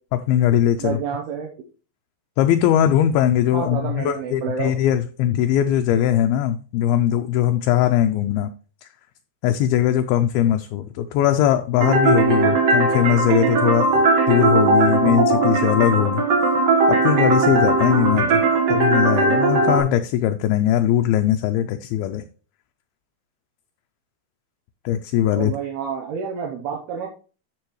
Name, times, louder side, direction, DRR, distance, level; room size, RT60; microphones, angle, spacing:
voice 1, 0.3-1.0 2.4-8.5 8.8-8.9 9.4-16.2 16.9-18.4 18.7-22.2 24.9-25.5, left 11 dB, 80° left, 2.3 m, -20 dB
voice 2, 0.8-1.5 3.5-4.7 25.3-27.1, right 7 dB, 75° right, 2.9 m, -29 dB
sound 1, 11.8-19.8, right 3 dB, 60° right, 1.8 m, -18 dB
13.0 x 5.1 x 3.1 m
omnidirectional pair, 4.7 m